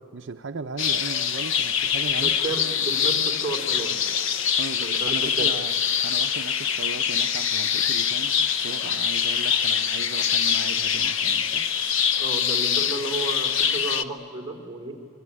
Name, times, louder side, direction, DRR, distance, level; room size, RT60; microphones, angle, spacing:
voice 1, 0.1-2.4 4.6-5.7 6.0-11.7, right 3 dB, 60° right, 7 dB, 0.7 m, -37 dB
sound 1, 0.8-14.0, left 7 dB, 70° left, 0.9 m, -24 dB
voice 2, 2.1-4.0 4.8-5.5 12.2-14.9, right 3 dB, 20° right, -1 dB, 3.7 m, -32 dB
26.0 x 22.5 x 9.9 m, 2.5 s
head